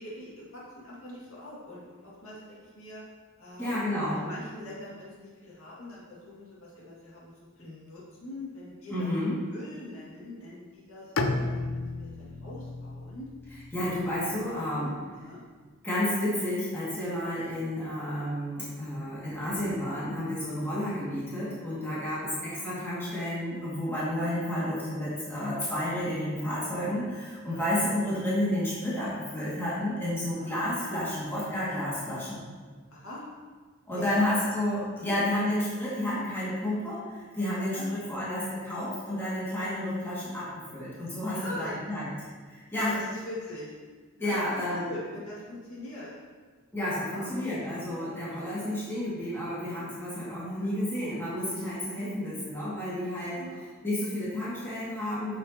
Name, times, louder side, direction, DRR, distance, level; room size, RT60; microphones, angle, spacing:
voice 1, 0.0-3.0 3.4-3.8 4.1-9.1 9.5-13.3 13.9-14.0 14.3-15.4 24.0-24.1 27.4-27.6 30.4-30.5 32.9-33.2 34.0-34.2 35.0-35.2 36.1-36.2 37.7-37.9 39.6-39.7 41.3-41.8 42.9-43.7 44.2-46.1 47.0-47.3 48.2-48.7 50.5-50.7 51.9-52.0 53.2-53.6, left 1 dB, 90° left, -6 dB, 2.0 m, -43 dB
voice 2, 3.6-4.2 8.9-9.3 13.7-14.9 15.8-32.4 33.9-42.1 42.5-42.9 44.2-44.9 46.7-53.4 53.8-55.4, left 1 dB, 10° left, -10 dB, 2.1 m, -31 dB
Bowed string instrument, 11.2-15.1, left 2 dB, 70° left, 0.6 m, -34 dB
8.9 x 6.6 x 2.9 m, 1.5 s
head